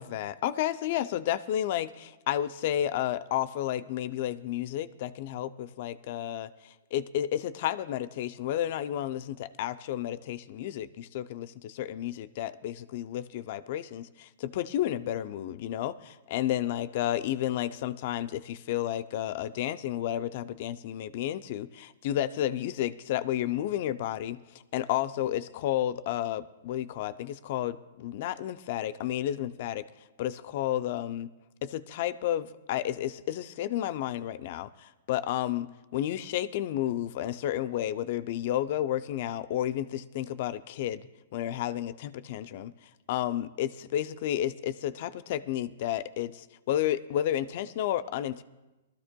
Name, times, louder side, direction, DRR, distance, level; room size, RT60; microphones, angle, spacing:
voice 1, 0.0-24.4 24.7-29.9 30.2-31.3 31.6-42.7 43.1-48.4, left 12 dB, 55° left, 14 dB, 0.5 m, -31 dB
20.5 x 13.0 x 2.2 m, 1.1 s
hypercardioid pair, 135°, 0 cm